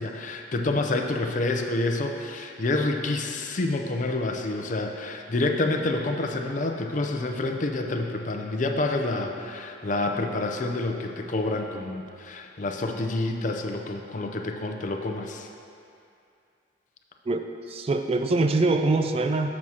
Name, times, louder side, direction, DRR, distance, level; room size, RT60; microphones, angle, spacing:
voice 1, 0.0-15.5, left 2 dB, 45° left, 3 dB, 0.5 m, -28 dB
voice 2, 17.3-19.5, right 2 dB, 35° right, 6 dB, 0.3 m, -24 dB
10.5 x 7.2 x 2.9 m, 2.6 s
head